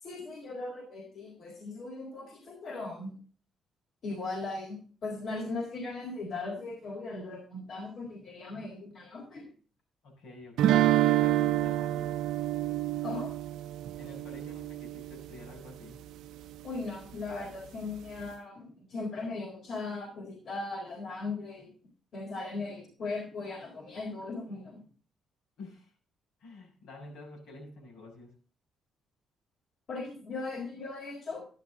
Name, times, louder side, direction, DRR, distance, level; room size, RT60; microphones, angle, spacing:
voice 1, 0.0-3.1 4.0-9.5 13.0-13.3 16.6-21.7 22.1-24.8 29.9-31.5, left 3 dB, 60° left, -1 dB, 4.0 m, -38 dB
voice 2, 10.0-12.2 14.0-16.0 25.6-25.9 26.4-28.3, left 2 dB, 85° left, -1 dB, 6.2 m, -49 dB
sound 1, 10.6-15.5, right 14 dB, 85° right, 0.5 m, -28 dB
11.5 x 11.5 x 3.7 m, 0.41 s
cardioid pair, 90°, 0 cm